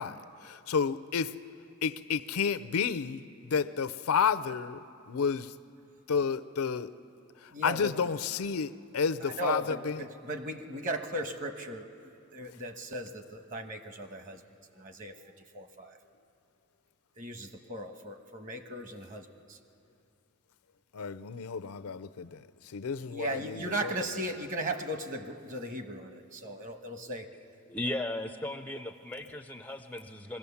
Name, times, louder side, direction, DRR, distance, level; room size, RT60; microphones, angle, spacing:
voice 1, 0.0-1.3 1.8-5.5 6.1-6.9 7.4-10.1 20.9-23.9, left 6 dB, 80° left, 14 dB, 0.5 m, -31 dB
voice 2, 7.5-7.9 9.2-14.4 14.7-15.1 15.5-16.0 17.2-19.6 23.1-27.3, right 1 dB, 35° right, 6 dB, 1.2 m, -37 dB
voice 3, 27.7-30.4, left 1 dB, 10° left, 7 dB, 0.4 m, -36 dB
23.5 x 16.5 x 7.0 m, 2.5 s
head